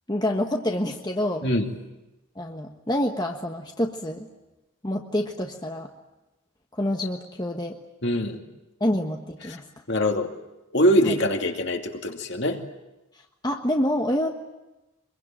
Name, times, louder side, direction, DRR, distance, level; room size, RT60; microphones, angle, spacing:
voice 1, 0.1-1.5 2.3-4.3 4.8-5.9 6.7-7.8 8.8-9.6 11.1-11.2 13.4-14.3, left 1 dB, 20° left, 2 dB, 1.3 m, -27 dB
voice 2, 8.0-8.4 9.5-9.6 9.9-10.3 10.7-12.6, equal, 55° left, 3 dB, 2.5 m, -23 dB
24.5 x 22.5 x 8.9 m, 1.0 s
head